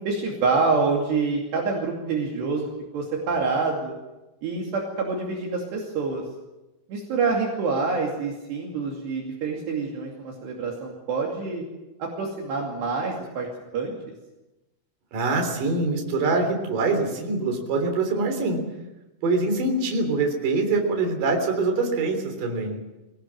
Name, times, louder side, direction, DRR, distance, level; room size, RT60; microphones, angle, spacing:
voice 1, 0.0-3.9 4.4-6.2 6.9-11.6 12.0-13.5 13.7-13.9, right 4 dB, 60° right, -1 dB, 4.5 m, -26 dB
voice 2, 15.1-18.6 19.2-22.8, right 3 dB, 45° right, 3 dB, 4.8 m, -24 dB
24.5 x 18.0 x 7.6 m, 1.0 s
omnidirectional pair, 5.7 m